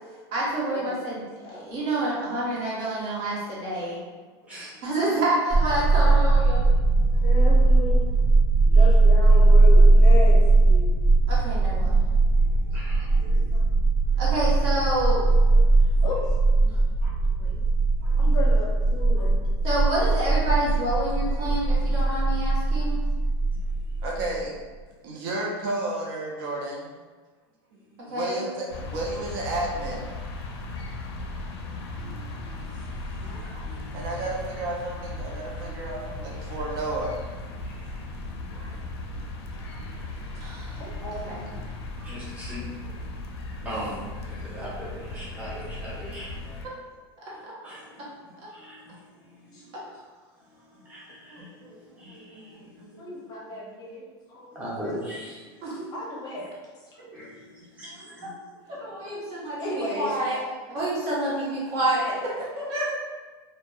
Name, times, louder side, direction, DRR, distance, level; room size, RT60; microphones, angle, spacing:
voice 1, 0.3-1.2 1.5-4.0 4.8-6.6 11.3-12.0 14.2-15.2 19.6-23.0 28.1-28.4 40.3-40.8 41.2-41.4 47.4-47.5 55.6-55.9 58.7-60.4 60.7-62.9, right 1 dB, 50° right, -6 dB, 1.0 m, -28 dB
voice 2, 4.4-5.0 8.6-8.8 12.3-13.3 23.5-23.6 23.9-24.0 31.0-34.0 37.6-38.1 38.7-38.8 39.5-40.3 40.7-41.0 42.0-43.1 43.6-46.5 47.3-48.2 48.5-49.7 50.7-53.0 54.5-55.8 56.4-56.5 57.1-58.3, equal, 10° right, -7 dB, 0.7 m, -42 dB
sound 1, 5.5-24.4, right 2 dB, 10° left, 1.0 m, -19 dB
voice 3, 5.8-8.1 8.7-11.0 13.3-13.6 14.1-14.2 16.0-16.2 18.2-19.4 40.8-41.5 46.4-46.6 48.0-48.1 49.5-49.6 53.0-54.6 55.9-56.5 59.6-60.1, left 1 dB, 30° left, -3 dB, 0.6 m, -34 dB
voice 4, 12.9-13.7 16.0-16.1 16.6-16.7 17.0-17.6 18.0-18.3 19.2-19.3 22.3-22.6 24.0-24.5 25.0-26.9 27.7-30.1 33.2-37.5 38.5-38.8 39.7-40.1 40.7-41.0 42.0-42.2 42.6-42.9 45.9-46.0 48.0-48.1 51.3-53.1 53.5-53.8 56.9-57.2 57.8-58.1 59.0-59.2 61.9-62.0, right 2 dB, 65° right, -2 dB, 0.5 m, -35 dB
sound 2, 28.7-46.7, left 2 dB, 85° left, 0.4 m, -37 dB
2.6 x 2.1 x 2.2 m, 1.4 s
supercardioid pair, 145°, 13 cm